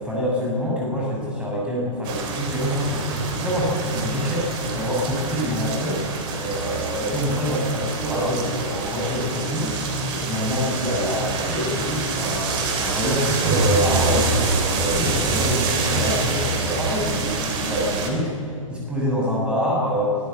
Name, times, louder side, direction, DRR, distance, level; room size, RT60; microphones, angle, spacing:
voice 1, 0.0-14.3 14.7-20.2, equal, 5° right, -4 dB, 6.8 m, -26 dB
sound 1, 2.0-18.1, right 3 dB, 25° right, 3.2 m, -26 dB
24.5 x 14.0 x 8.0 m, 2.7 s
figure-of-eight pair, 120°, 17 cm